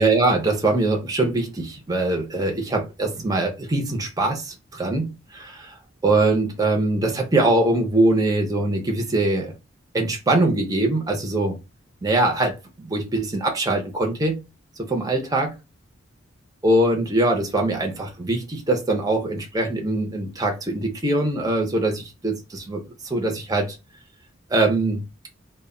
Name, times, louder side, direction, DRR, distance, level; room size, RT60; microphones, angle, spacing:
voice 1, 0.0-5.7 6.0-9.5 9.9-11.6 12.0-14.4 14.9-15.5 16.6-23.8 24.5-25.0, right 2 dB, 20° right, 0.5 m, -22 dB
2.2 x 2.1 x 3.6 m
head